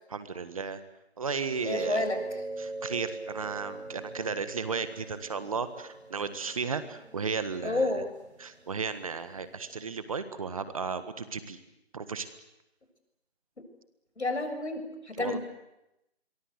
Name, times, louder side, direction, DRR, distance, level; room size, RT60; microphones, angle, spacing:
voice 1, 0.1-0.8 1.2-2.1 2.6-8.0 8.4-11.6 11.9-12.3 15.2-15.4, right 5 dB, 30° right, 12 dB, 1.6 m, -34 dB
voice 2, 1.6-2.2 7.6-8.1 14.2-15.4, left 2 dB, 85° left, 7 dB, 7.0 m, -30 dB
sound 1, 1.6-10.0, right 2 dB, 80° right, 7.2 m, -42 dB
28.5 x 23.0 x 8.2 m, 0.88 s
figure-of-eight pair, 170°, 33 cm